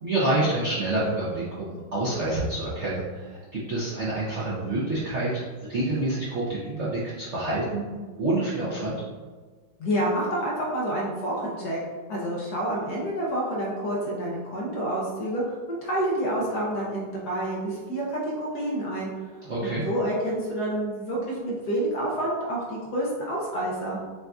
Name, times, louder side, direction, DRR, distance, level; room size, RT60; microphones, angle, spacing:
voice 1, 0.0-9.0 19.4-19.8, right 2 dB, 60° right, -8 dB, 0.7 m, -28 dB
voice 2, 9.8-11.8 12.1-19.1 19.6-24.0, right 1 dB, 60° left, -4 dB, 1.1 m, -28 dB
6.7 x 2.6 x 2.3 m, 1.5 s
omnidirectional pair, 2.3 m